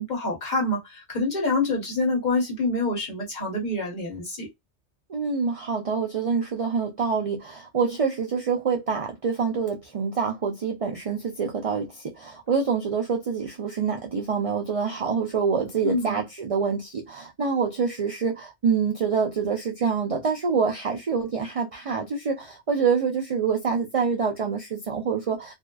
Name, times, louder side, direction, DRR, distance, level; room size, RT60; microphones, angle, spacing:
voice 1, 0.0-4.5 15.8-16.2, left 2 dB, 40° left, 1.2 m, -26 dB
voice 2, 5.1-25.5, right 5 dB, 60° right, 0.3 m, -26 dB
2.6 x 2.3 x 2.3 m
omnidirectional pair, 1.2 m